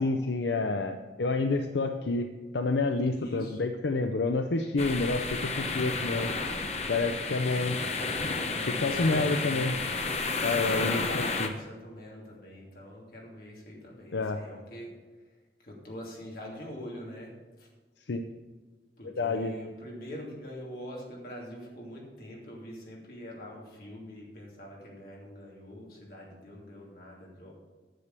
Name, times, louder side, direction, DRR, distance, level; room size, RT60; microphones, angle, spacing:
voice 1, 0.0-6.3 6.9-7.8 8.6-9.7 10.4-11.5 14.1-14.4 18.1-18.2 19.2-19.5, left 3 dB, 80° left, 6 dB, 0.6 m, -29 dB
voice 2, 3.2-3.6 8.5-9.7 10.7-14.9 15.6-17.7 19.0-27.5, equal, 55° left, -3 dB, 3.0 m, -43 dB
Seaside Waves, 4.8-11.5, left 3 dB, 35° left, 0.9 m, -31 dB
10.0 x 6.7 x 6.8 m, 1.3 s
head